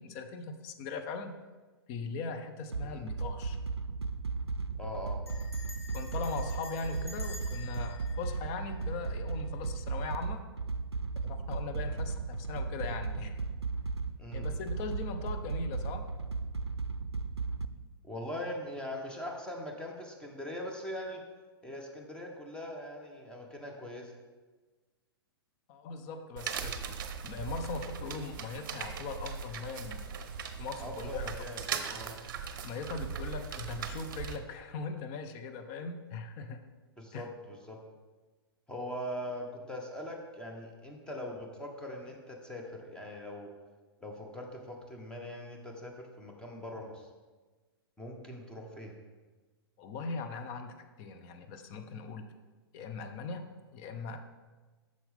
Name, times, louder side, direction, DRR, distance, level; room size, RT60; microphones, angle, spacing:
voice 1, 0.0-1.3 1.9-3.6 5.9-10.4 11.2-13.4 14.3-16.1 25.7-26.9 27.2-30.0 30.6-31.4 32.6-36.6 37.1-37.3 49.8-52.3 52.7-54.2, left 4 dB, 35° left, 8 dB, 0.7 m, -40 dB
sound 1, 2.7-17.7, right 4 dB, 90° right, 0.4 m, -35 dB
Bell, 3.1-3.5 3.8-3.9 4.1-4.5 5.3-9.3, left 4 dB, 80° left, 1.6 m, -50 dB
voice 2, 4.8-5.4 11.8-12.0 14.2-14.5 18.0-21.2 21.6-24.1 30.8-32.1 37.0-37.8 38.7-43.5 44.0-47.1 48.0-48.9, left 1 dB, 5° left, 1 dB, 1.0 m, -41 dB
sound 2, 26.4-34.4, right 6 dB, 50° right, 0.7 m, -39 dB
8.9 x 6.5 x 3.5 m, 1.3 s
figure-of-eight pair, 110°, 13 cm